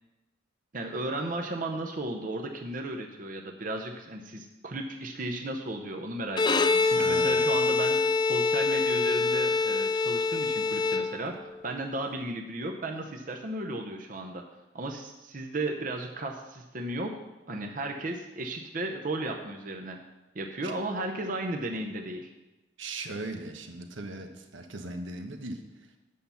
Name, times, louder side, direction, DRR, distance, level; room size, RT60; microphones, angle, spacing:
voice 1, 0.7-14.4 14.7-17.1 17.5-20.0 20.3-22.3, right 2 dB, 45° right, 3 dB, 0.7 m, -35 dB
Bowed string instrument, 6.3-11.5, left 4 dB, 20° left, 0.3 m, -25 dB
voice 2, 6.9-7.6 20.6-20.7 22.8-26.0, right 2 dB, 80° right, 5 dB, 1.0 m, -39 dB
8.4 x 5.6 x 7.0 m, 1.0 s
head